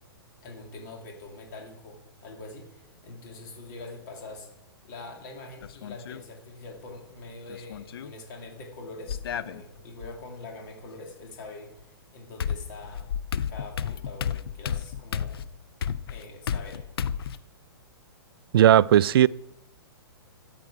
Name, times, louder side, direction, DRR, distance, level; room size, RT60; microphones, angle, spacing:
voice 1, 0.4-4.5 4.8-13.1 13.5-15.4 16.1-16.8, left 2 dB, 50° left, 2.6 m, -44 dB
sound 1, 5.6-6.2 7.5-8.1 9.1-10.1 11.8-11.9 12.4-17.4, left 8 dB, 70° left, 0.6 m, -32 dB
voice 2, 18.5-19.3, right 11 dB, 65° right, 0.4 m, -16 dB
13.5 x 7.7 x 4.9 m
hypercardioid pair, 135°, 13 cm